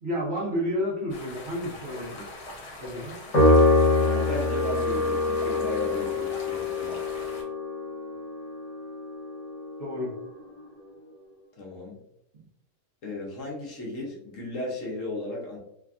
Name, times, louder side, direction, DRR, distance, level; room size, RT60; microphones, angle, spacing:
voice 1, 0.0-2.3 2.8-3.2 9.8-10.1 12.3-12.4, equal, 55° right, -4 dB, 0.8 m, -31 dB
sound 1, 1.1-7.4, left 2 dB, 85° left, 1.2 m, -42 dB
Piano, 3.3-9.9, left 2 dB, 30° left, 0.7 m, -24 dB
voice 2, 4.0-7.0 11.6-12.0 13.0-15.6, left 2 dB, 65° left, -2 dB, 1.0 m, -35 dB
3.3 x 2.2 x 2.4 m, 0.77 s
omnidirectional pair, 1.6 m